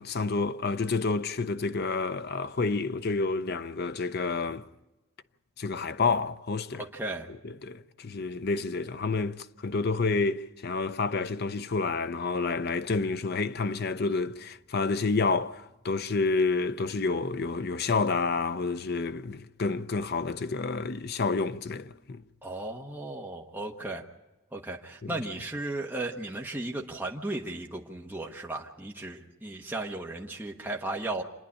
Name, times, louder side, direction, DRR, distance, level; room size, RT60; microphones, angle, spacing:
voice 1, 0.0-4.7 5.6-6.8 7.4-22.2 25.0-25.1, left 4 dB, 50° left, 0.6 m, -29 dB
voice 2, 6.7-7.3 22.4-24.0 24.5-31.2, right 2 dB, 10° right, 1.2 m, -35 dB
27.5 x 10.0 x 9.9 m
head